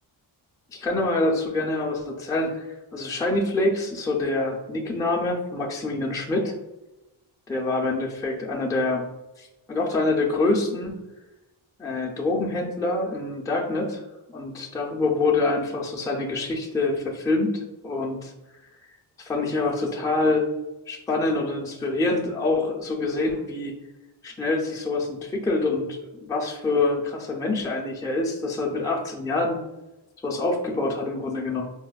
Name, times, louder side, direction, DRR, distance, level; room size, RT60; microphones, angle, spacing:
voice 1, 0.7-6.5 7.5-9.1 9.4-11.0 11.8-14.0 14.3-18.3 19.2-20.5 20.9-23.7 24.2-29.6 30.2-31.6, left 2 dB, 5° left, -2 dB, 0.5 m, -26 dB
4.1 x 2.1 x 2.3 m, 0.99 s
cardioid pair, 70°, 49 cm